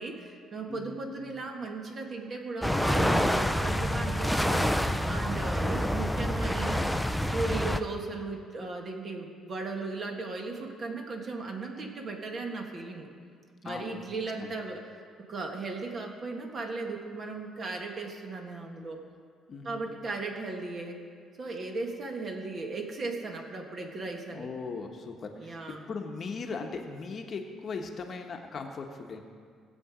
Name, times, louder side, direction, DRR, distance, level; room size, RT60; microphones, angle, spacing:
voice 1, 0.0-6.9 7.3-13.1 13.6-14.8 15.3-19.0 19.6-21.0 21.4-24.5 25.4-25.8, right 3 dB, 40° right, 2 dB, 1.8 m, -36 dB
voice 2, 0.7-1.3 13.6-14.0 14.4-14.5 19.5-20.0 24.3-29.2, left 4 dB, 40° left, 3 dB, 1.1 m, -39 dB
sound 1, 2.6-7.8, equal, ahead, 0.5 m, -27 dB
19.0 x 7.7 x 5.0 m, 2.1 s
cardioid pair, 125°, 0 cm